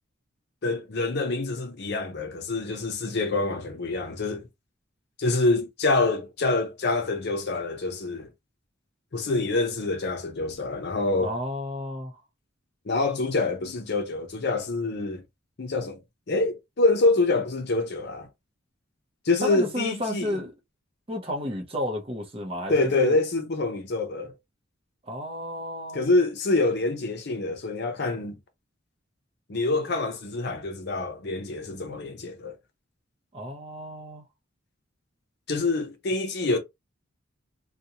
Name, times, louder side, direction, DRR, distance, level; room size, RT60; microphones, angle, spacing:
voice 1, 0.6-4.5 5.2-8.3 9.1-11.4 12.9-15.2 15.6-16.0 16.3-18.3 19.2-20.4 22.7-24.3 25.9-28.4 29.5-32.5 35.5-36.6, left 3 dB, 55° left, 0.6 m, -26 dB
voice 2, 11.2-12.2 19.4-20.5 21.1-23.2 25.0-26.0 33.3-34.2, left 1 dB, 30° right, 0.7 m, -32 dB
2.5 x 2.2 x 2.8 m
head